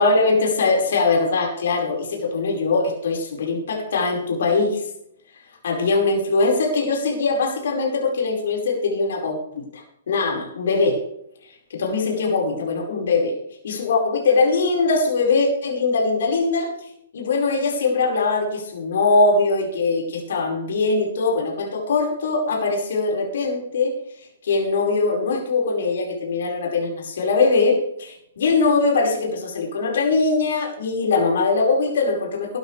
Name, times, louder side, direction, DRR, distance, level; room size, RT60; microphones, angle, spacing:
voice 1, 0.0-4.8 5.6-11.0 11.7-13.3 13.6-16.9 17.1-23.9 24.4-32.6, left 3 dB, 65° left, 0 dB, 5.2 m, -21 dB
17.0 x 13.0 x 3.4 m, 0.73 s
hypercardioid pair, 125°, 0 cm